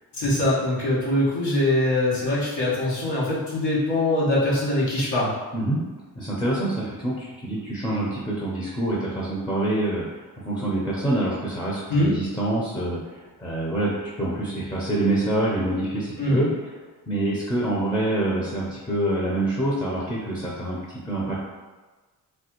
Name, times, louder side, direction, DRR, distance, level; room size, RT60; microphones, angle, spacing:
voice 1, 0.2-5.3 11.9-12.1 16.2-16.4, left 1 dB, 90° left, -7 dB, 1.2 m, -22 dB
voice 2, 6.2-10.0 10.4-13.0 13.4-16.5 17.1-21.4, right 1 dB, 10° left, -5 dB, 0.5 m, -26 dB
3.3 x 2.3 x 2.9 m, 1.3 s
cardioid pair, 95°, 41 cm